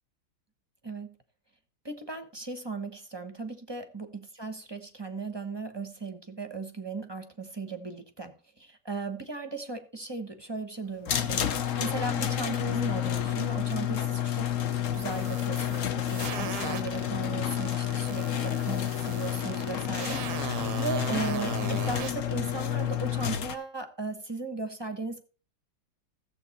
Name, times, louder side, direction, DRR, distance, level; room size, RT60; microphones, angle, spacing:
voice 1, 0.8-1.1 1.8-11.4 11.8-14.5 14.9-25.2, right 3 dB, 20° right, 7 dB, 0.9 m, -37 dB
sound 1, 11.1-23.5, left 10 dB, 55° left, 1.1 m, -30 dB
sound 2, 14.9-17.1 17.5-22.1, right 11 dB, 80° right, 1.3 m, -39 dB
15.0 x 7.6 x 4.2 m, 0.37 s
omnidirectional pair, 1.8 m